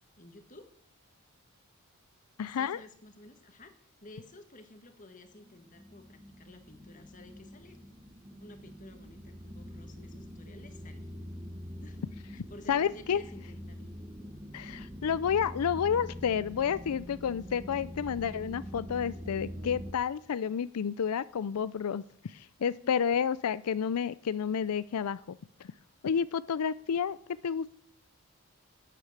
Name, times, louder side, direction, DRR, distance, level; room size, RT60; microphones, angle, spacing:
voice 1, 0.2-0.7 2.5-7.8 8.4-11.1 11.8-12.0 12.3-13.9 22.7-23.0, left 2 dB, 35° left, 7 dB, 1.7 m, -53 dB
voice 2, 2.4-2.8 12.7-13.2 14.5-25.7 26.0-27.2 27.4-27.7, left 7 dB, 90° left, 17 dB, 0.4 m, -30 dB
sound 1, 5.4-19.9, equal, 20° right, 1.0 m, -44 dB
11.0 x 9.1 x 8.0 m, 0.64 s
head